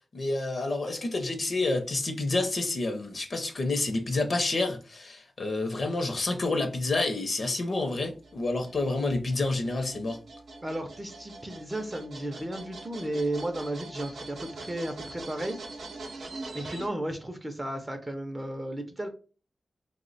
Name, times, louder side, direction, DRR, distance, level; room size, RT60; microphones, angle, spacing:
voice 1, 0.1-10.2, left 2 dB, 45° left, 0.5 m, -29 dB
sound 1, 7.8-16.9, right 3 dB, 75° right, 0.6 m, -43 dB
voice 2, 10.6-15.6 16.5-19.1, right 1 dB, 15° right, 0.4 m, -34 dB
3.1 x 2.0 x 3.9 m
wide cardioid pair, 145°, 0 cm